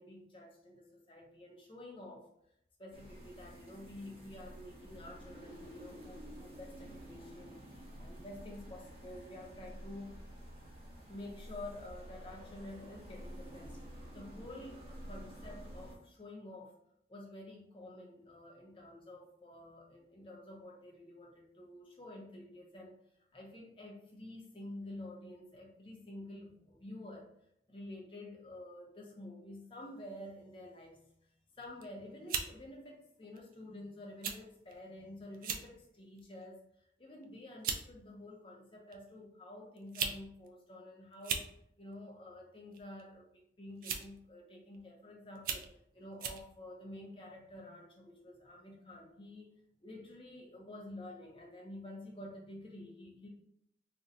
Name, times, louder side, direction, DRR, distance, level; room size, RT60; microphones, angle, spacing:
voice 1, 0.0-2.3 2.8-7.6 8.0-10.2 11.1-13.8 14.1-16.7 17.1-23.0 23.3-27.3 27.7-31.3 31.5-36.6 37.0-41.5 41.8-49.6 49.8-53.3, left 1 dB, 30° left, -1 dB, 0.6 m, -49 dB
sound 1, 2.9-15.9, equal, 30° right, 0.8 m, -50 dB
sound 2, 31.6-31.9 32.3-32.5 33.4-33.5 34.2-34.4 34.7-34.8 35.3-35.7 36.2-36.5 37.2-37.3 37.6-37.8 38.9-39.0 39.8-40.2 40.5-40.6 41.1-41.5 42.7-43.0 43.8-44.2 44.7-44.8 45.4-45.7 46.2-46.4, right 6 dB, 50° right, 0.3 m, -37 dB
2.5 x 2.2 x 3.8 m, 0.75 s
head